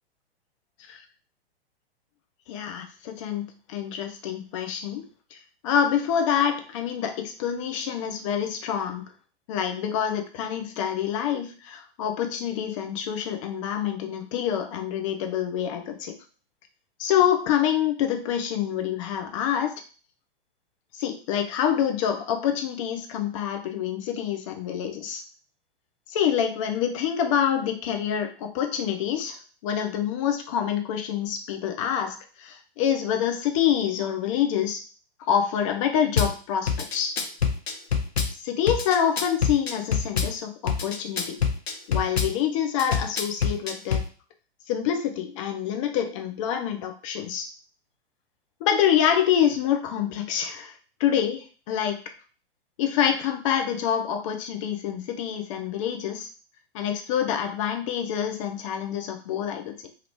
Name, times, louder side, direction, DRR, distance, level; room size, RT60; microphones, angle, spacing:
voice 1, 2.5-5.0 5.3-5.4 5.6-9.0 9.5-16.1 17.0-19.8 21.0-25.2 26.1-29.4 29.6-34.8 35.3-37.1 38.4-41.4 41.9-44.0 44.7-47.5 48.6-50.7 51.0-52.0 52.8-56.3 56.7-59.7, left 9 dB, 30° left, 5 dB, 0.5 m, -26 dB
Drum kit / Bass drum, 36.2-36.3 36.7-38.3 38.7-40.3 40.7-42.3 42.8-44.1, left 6 dB, 75° left, 0.7 m, -25 dB
2.9 x 2.4 x 3.4 m, 0.38 s
figure-of-eight pair, 105°, 31 cm